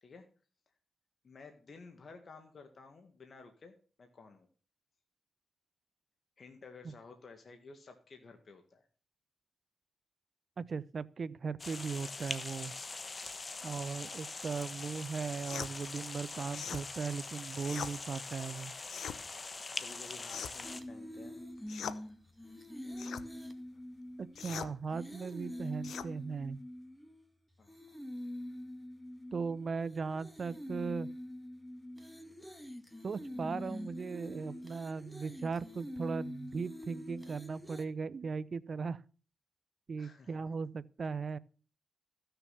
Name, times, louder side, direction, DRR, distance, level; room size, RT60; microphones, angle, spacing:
voice 1, 1.2-4.5 6.4-8.9 13.6-14.2 19.8-21.4 27.6-27.8 40.0-40.4, left 4 dB, 55° left, 1.9 m, -54 dB
voice 2, 10.6-12.7 13.6-18.7 24.2-26.6 29.3-31.1 33.0-39.0 39.9-41.4, right 5 dB, 55° right, 0.6 m, -38 dB
sound 1, 11.6-20.8, left 3 dB, 40° left, 1.2 m, -43 dB
sound 2, 15.4-15.7 16.5-16.8 17.6-17.9 18.8-19.2 20.2-20.7 21.7-22.0 23.0-23.3 24.4-24.7 25.8-26.1, left 8 dB, 80° left, 0.8 m, -41 dB
sound 3, 20.6-27.3 27.7-37.8, left 1 dB, 5° left, 1.9 m, -45 dB
15.0 x 6.9 x 5.8 m
cardioid pair, 70°, 0 cm